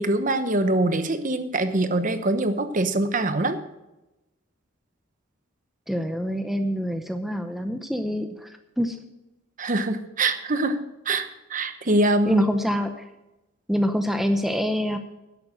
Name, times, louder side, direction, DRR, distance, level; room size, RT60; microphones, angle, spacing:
voice 1, 0.0-3.6 9.6-10.8 11.0-12.4, right 2 dB, 40° right, 10 dB, 1.0 m, -24 dB
voice 2, 5.9-9.0 12.3-13.0 13.7-15.0, equal, ahead, 6 dB, 0.7 m, -26 dB
11.0 x 8.3 x 6.5 m, 0.96 s
head